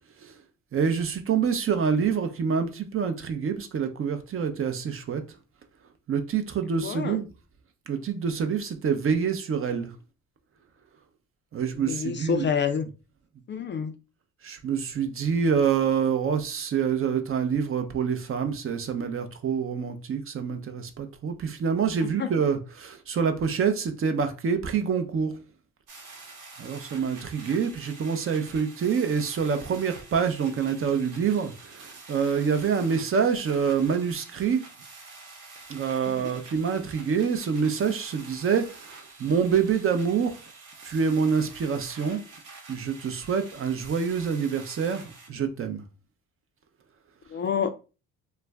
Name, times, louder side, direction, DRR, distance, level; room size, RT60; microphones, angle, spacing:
voice 1, 0.7-5.2 6.1-7.3 7.9-9.9 11.5-12.5 14.4-25.3 26.6-34.6 35.7-40.4 40.8-42.2 42.7-45.9, right 6 dB, 40° right, 0.6 m, -26 dB
voice 2, 6.8-7.2 11.9-12.8 13.5-13.9 22.2-22.3 36.2-36.3 47.3-47.7, left 7 dB, 35° left, 0.4 m, -27 dB
sound 1, 25.9-45.3, right 3 dB, 65° right, 1.0 m, -47 dB
2.4 x 2.1 x 3.3 m
supercardioid pair, 75°, 33 cm